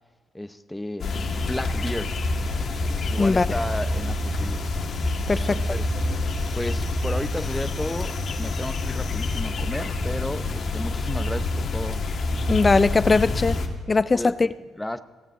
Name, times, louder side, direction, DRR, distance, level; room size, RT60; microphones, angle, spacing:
voice 1, 0.3-2.2 3.1-4.6 5.3-5.9 6.5-12.0 14.1-15.0, left 1 dB, 10° left, 0.7 m, -33 dB
sound 1, 1.0-13.7, left 2 dB, 55° left, 1.8 m, -27 dB
voice 2, 5.3-5.6 12.5-13.6 13.9-14.3, left 3 dB, 25° left, 0.3 m, -20 dB
16.5 x 9.6 x 7.7 m
cardioid pair, 90°, 0 cm